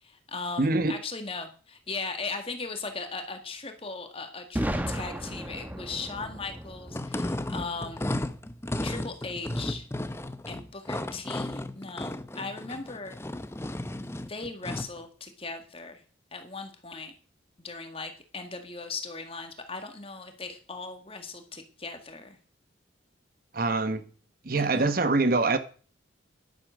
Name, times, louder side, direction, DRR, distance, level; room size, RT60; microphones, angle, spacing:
voice 1, 0.0-8.1 8.8-9.9 10.5-13.2 14.3-16.0 16.3-17.1 17.6-22.4 24.5-24.9, left 4 dB, 30° left, 2.0 m, -38 dB
voice 2, 0.6-0.9 23.5-24.0 24.4-25.6, right 3 dB, 45° right, 1.0 m, -24 dB
Boom, 4.5-8.4, equal, 10° right, 1.0 m, -35 dB
sound 1, 6.9-15.0, left 1 dB, 15° left, 0.6 m, -34 dB
11.0 x 9.7 x 6.5 m
head